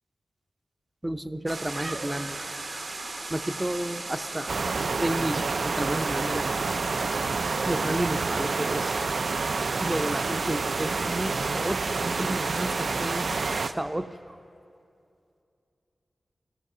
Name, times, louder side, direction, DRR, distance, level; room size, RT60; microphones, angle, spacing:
voice 1, 1.0-2.4 3.3-4.6 4.9-6.8 7.7-8.9 9.8-13.3 13.7-14.4, right 1 dB, 15° right, 11 dB, 0.5 m, -31 dB
sound 1, 1.5-13.7, right 2 dB, 50° right, 0.8 m, -36 dB
sound 2, 4.5-13.7, right 4 dB, 70° right, 0.4 m, -29 dB
16.0 x 14.5 x 6.0 m, 2.6 s
wide cardioid pair, 110°, 0 cm